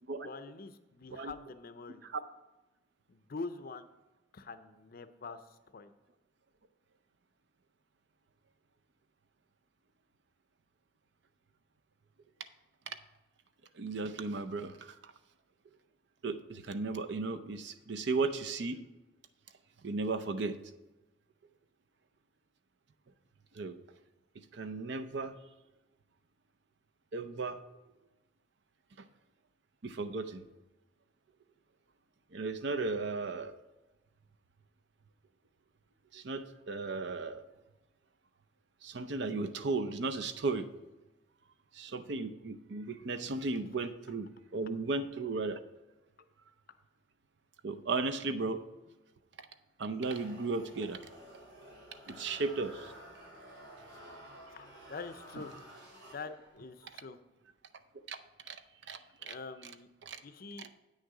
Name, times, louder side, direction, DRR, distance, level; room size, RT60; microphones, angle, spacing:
voice 1, 0.2-2.1 3.1-3.9 4.3-5.9 54.2-55.6 56.1-57.2 59.2-59.9 60.2-60.7, left 4 dB, 50° left, 10 dB, 0.5 m, -45 dB
voice 2, 13.7-15.1 16.2-18.8 19.8-20.6 23.5-23.8 24.5-25.4 27.1-27.6 29.8-30.4 32.3-33.6 36.1-37.4 38.8-40.7 41.7-45.6 47.6-48.6 49.8-51.0 52.1-52.9 58.1-58.2 58.5-58.6 58.9-59.3 60.0-60.2 60.6-60.7, right 3 dB, 60° right, 9 dB, 0.6 m, -35 dB
sound 1, 50.0-56.6, right 1 dB, 80° right, 2.8 m, -52 dB
8.6 x 6.5 x 4.8 m, 1.1 s
head